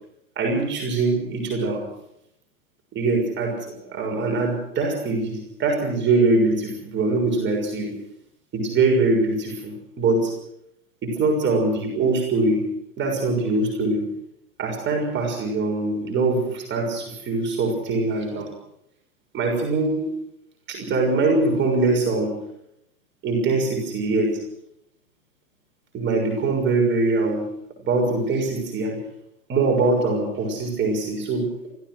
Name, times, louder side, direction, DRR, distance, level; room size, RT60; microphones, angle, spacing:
voice 1, 0.4-1.9 2.9-7.9 8.5-10.3 11.0-12.6 13.0-14.0 14.6-18.5 19.3-20.0 20.7-22.3 23.2-24.4 25.9-27.4 27.8-29.0 29.5-31.5, right 3 dB, 25° right, 1 dB, 6.5 m, -23 dB
27.0 x 15.0 x 6.4 m, 0.78 s
figure-of-eight pair, 95°, 44 cm